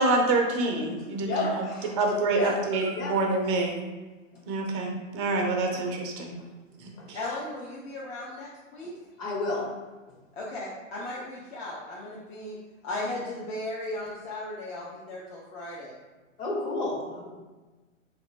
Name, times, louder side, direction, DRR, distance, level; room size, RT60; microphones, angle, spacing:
voice 1, 0.0-1.6 2.0-3.7 4.5-6.4 7.1-7.2, right 2 dB, 25° right, 2 dB, 0.4 m, -26 dB
voice 2, 1.2-1.9 2.3-2.5 3.0-3.1 9.2-9.8 16.4-17.3, left 2 dB, 35° left, -2 dB, 1.3 m, -31 dB
voice 3, 7.1-8.9 10.3-12.6 12.8-15.9, left 2 dB, 50° left, -6 dB, 1.0 m, -36 dB
3.4 x 2.9 x 4.1 m, 1.2 s
hypercardioid pair, 125°, 40 cm